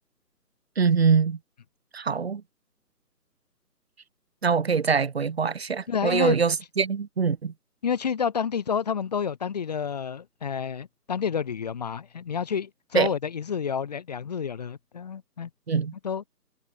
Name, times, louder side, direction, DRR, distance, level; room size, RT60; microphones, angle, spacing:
voice 1, 0.8-1.4 1.9-2.4 4.4-7.5 12.9-13.1 15.7-15.9, right 5 dB, 40° right, 2.3 m, -23 dB
voice 2, 5.9-6.4 7.8-15.5 16.0-16.4, left 7 dB, 25° left, 2.2 m, -29 dB
figure-of-eight pair, 165°, 48 cm